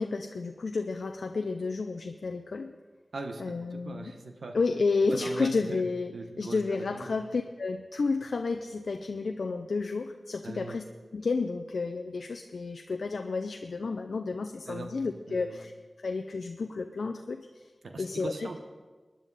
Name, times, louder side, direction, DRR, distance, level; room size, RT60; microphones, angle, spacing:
voice 1, 0.0-2.7 3.4-4.1 4.5-10.8 11.1-15.7 16.0-17.7 18.0-18.5, left 4 dB, 85° left, 6 dB, 0.5 m, -31 dB
voice 2, 3.1-4.6 5.1-5.8 6.1-7.1 10.4-10.8 14.7-14.9 15.3-15.6 17.8-18.6, right 3 dB, 90° right, 5 dB, 1.2 m, -40 dB
18.5 x 10.0 x 4.1 m, 1.4 s
cardioid pair, 45°, 0 cm